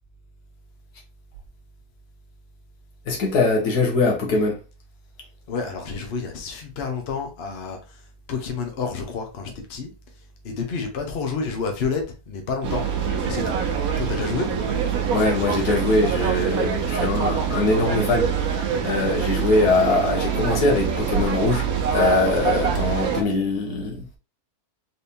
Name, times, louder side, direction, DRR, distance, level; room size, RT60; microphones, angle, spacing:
voice 1, 3.1-4.6 15.1-18.3 18.8-24.2, left 3 dB, 85° left, 1.7 m, -22 dB
voice 2, 5.5-7.8 8.3-9.9 10.4-12.8 13.2-13.6 14.0-14.5, left 5 dB, 45° left, 1.1 m, -29 dB
sound 1, 12.6-23.2, right 7 dB, 65° right, 1.3 m, -24 dB
4.4 x 3.5 x 2.7 m
omnidirectional pair, 1.7 m